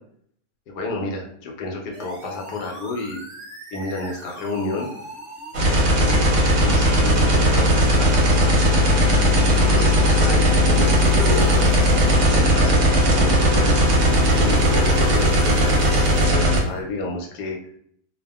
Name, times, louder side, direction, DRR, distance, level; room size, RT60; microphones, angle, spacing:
voice 1, 0.7-3.2 3.7-4.9 5.7-8.3 8.9-11.7 12.1-13.8 14.3-17.6, left 3 dB, 80° left, 1 dB, 1.1 m, -30 dB
sound 1, 1.9-16.8, equal, 40° right, 0.4 m, -37 dB
sound 2, 5.5-16.6, equal, 60° right, 0.9 m, -17 dB
2.6 x 2.4 x 2.2 m, 0.64 s
omnidirectional pair, 1.8 m